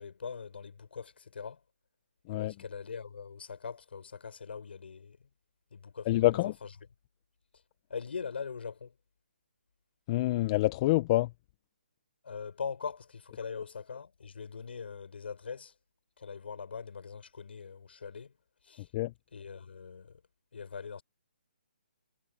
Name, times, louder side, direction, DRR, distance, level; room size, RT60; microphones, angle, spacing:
voice 1, 0.0-1.6 2.3-5.2 5.7-6.3 6.6-6.7 7.9-8.9 12.2-15.7 16.2-18.3 18.6-18.9 19.3-20.2 20.5-21.0, left 5 dB, 65° left, 7.0 m, -41 dB
voice 2, 6.1-6.5 10.1-11.3 18.9-19.1, left 18 dB, 30° left, 1.2 m, -26 dB
hypercardioid pair, 150°, 6 cm